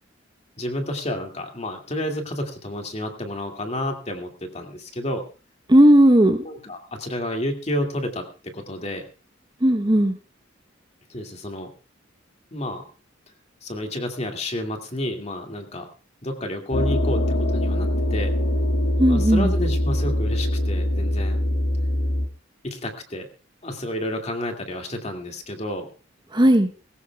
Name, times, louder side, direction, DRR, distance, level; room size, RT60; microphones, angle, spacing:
voice 1, 0.6-5.2 6.4-9.0 11.1-11.7 12.5-12.8 13.6-15.9 16.2-18.3 19.1-21.4 22.6-23.3 23.6-25.9, left 1 dB, 35° left, 3 dB, 2.2 m, -30 dB
voice 2, 5.7-6.4 9.6-10.1 19.0-19.5 26.3-26.7, right 1 dB, 25° right, 6 dB, 0.9 m, -15 dB
sound 1, 16.7-22.3, left 1 dB, 85° left, 1.7 m, -23 dB
20.0 x 17.0 x 2.3 m, 0.35 s
head